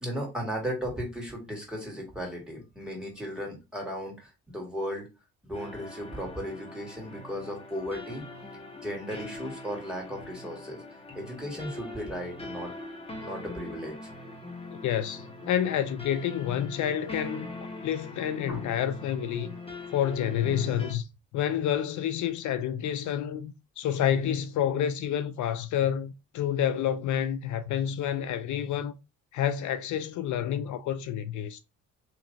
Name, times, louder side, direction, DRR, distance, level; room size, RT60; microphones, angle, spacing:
voice 1, 0.0-5.1 5.4-8.2 8.8-10.8 11.1-12.7 13.2-14.0 18.5-18.6, equal, 5° right, 2.4 m, -36 dB
sound 1, 5.5-20.9, left 2 dB, 20° left, 1.3 m, -42 dB
voice 2, 14.7-17.5 17.8-19.5 19.9-21.1 21.3-28.9 29.3-31.6, left 9 dB, 75° left, 0.5 m, -29 dB
3.3 x 2.9 x 3.9 m
cardioid pair, 90°, 30 cm